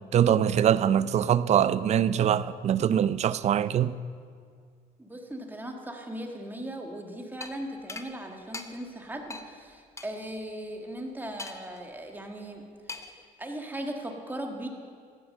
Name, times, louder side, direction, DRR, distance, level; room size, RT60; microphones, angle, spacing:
voice 1, 0.0-4.0, right 9 dB, 40° right, 0.4 m, -23 dB
voice 2, 5.0-12.6 12.9-14.7, right 1 dB, 10° right, 1.6 m, -38 dB
sound 1, 7.4-7.5 7.9-8.1 8.5-8.7 9.3-9.5 10.0-10.1 11.4-11.8 12.9-13.2, left 3 dB, 15° left, 0.8 m, -39 dB
14.5 x 8.8 x 6.5 m
cardioid pair, 110°, 17 cm